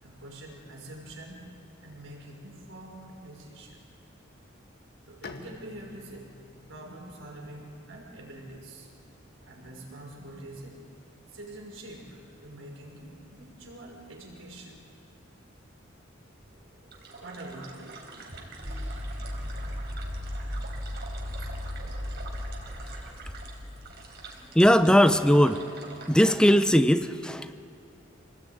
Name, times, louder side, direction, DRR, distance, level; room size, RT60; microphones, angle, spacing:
voice 1, 0.0-1.5 1.8-3.8 5.1-6.3 6.7-8.9 9.4-10.8 11.3-14.9 17.2-17.9, right 1 dB, 80° right, 0 dB, 5.7 m, -45 dB
Bowed string instrument, 5.2-8.9, left 3 dB, 60° left, 1.7 m, -49 dB
sound 1, 16.4-24.5, left 1 dB, 35° right, 3.2 m, -37 dB
sound 2, 16.9-26.2, right 4 dB, 55° right, 4.2 m, -46 dB
voice 2, 24.5-25.6 26.1-27.5, equal, 5° left, 10 dB, 0.7 m, -19 dB
26.5 x 19.0 x 9.4 m, 2.6 s
head